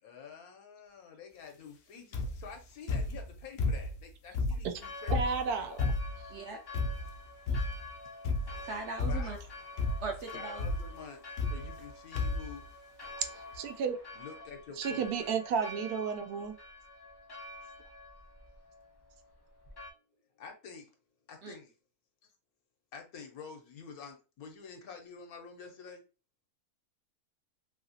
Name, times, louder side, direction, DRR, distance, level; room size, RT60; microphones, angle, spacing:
voice 1, 0.0-5.8 9.1-9.4 10.3-12.6 14.1-15.4 20.4-20.9 21.3-21.7 22.9-26.0, left 6 dB, 75° left, 1.2 m, -48 dB
sound 1, 2.1-2.5 2.9-4.0 4.3-6.3 6.7-7.2 7.5-7.9 8.3-8.7 9.0-9.5 9.8-10.2 10.6-10.9 11.4-11.9 12.2-12.5 13.2-13.3 13.5-13.6, left 3 dB, 60° left, 0.7 m, -32 dB
Church bell, 4.8-19.9, left 2 dB, 40° left, 0.3 m, -48 dB
voice 2, 5.1-5.8 13.2-13.3 13.5-14.0 14.8-16.5, right 6 dB, 85° right, 1.1 m, -32 dB
voice 3, 8.7-9.4 10.0-10.6 21.4-21.5, right 4 dB, 65° right, 0.7 m, -39 dB
3.1 x 2.8 x 2.7 m
omnidirectional pair, 1.6 m